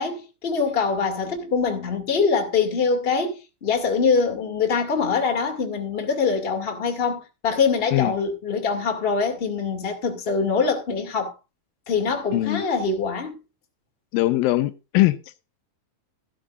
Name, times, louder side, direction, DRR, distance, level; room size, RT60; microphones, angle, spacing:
voice 1, 0.0-11.3 11.9-13.4, left 5 dB, 20° left, 2.0 m, -24 dB
voice 2, 12.3-12.6 14.1-15.2, left 17 dB, 80° left, 2.5 m, -21 dB
13.5 x 12.5 x 2.5 m
omnidirectional pair, 4.1 m